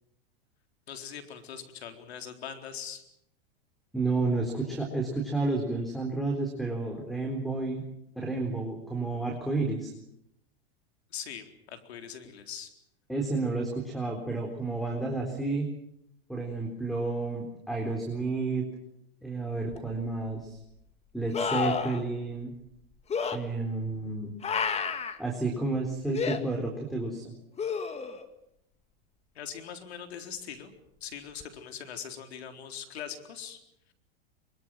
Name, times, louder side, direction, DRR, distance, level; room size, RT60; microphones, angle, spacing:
voice 1, 0.9-3.0 11.1-12.7 29.3-30.7 31.0-33.6, left 8 dB, 85° left, 6 dB, 4.1 m, -41 dB
voice 2, 3.9-7.8 8.2-9.9 13.1-15.7 16.3-18.7 19.2-20.6 21.1-22.5 23.3-24.3 25.2-27.3, right 3 dB, ahead, 3 dB, 3.9 m, -31 dB
sound 1, 19.7-19.8 21.3-22.0 23.1-23.4 24.4-25.2 26.1-26.4 27.6-28.3 31.4-31.5, left 5 dB, 20° left, 2.1 m, -30 dB
24.0 x 23.5 x 7.7 m, 0.77 s
hypercardioid pair, 125°, 31 cm